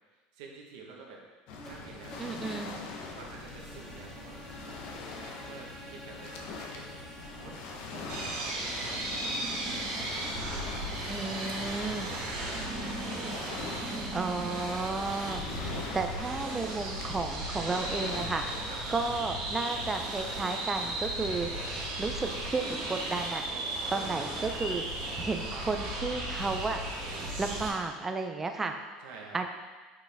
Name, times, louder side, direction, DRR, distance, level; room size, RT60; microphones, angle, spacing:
voice 1, 0.1-1.2 1.6-2.4 3.0-4.5 5.4-7.0 7.4-10.1 10.5-10.9 11.6-13.2 18.6-18.8 23.8-23.9 29.0-29.4, right 4 dB, 90° right, -2 dB, 1.1 m, -50 dB
Waves surf, 1.5-18.8, left 4 dB, 60° left, 0.8 m, -43 dB
sound 1, 1.5-9.5, equal, 15° left, 1.0 m, -49 dB
voice 2, 2.2-2.7 11.1-12.1 14.1-18.4 18.9-21.5 22.0-23.4 23.9-24.8 25.2-26.8 27.4-28.7 29.3-29.5, right 3 dB, 15° right, 5 dB, 0.4 m, -33 dB
sound 2, 8.1-27.7, right 1 dB, 65° right, 1.6 m, -35 dB
5.6 x 5.0 x 3.4 m, 1.3 s
cardioid pair, 165°, 2 cm